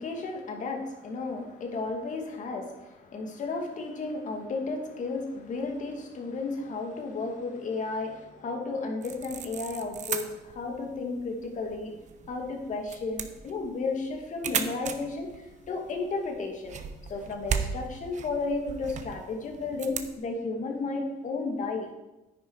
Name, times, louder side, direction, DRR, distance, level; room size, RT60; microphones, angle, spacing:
voice 1, 0.0-11.9 12.3-16.8 17.1-21.9, left 3 dB, 45° left, 3 dB, 2.2 m, -33 dB
sound 1, 9.0-20.1, right 7 dB, 45° right, 1.0 m, -37 dB
10.0 x 9.7 x 4.8 m, 1.0 s
cardioid pair, 110°, 17 cm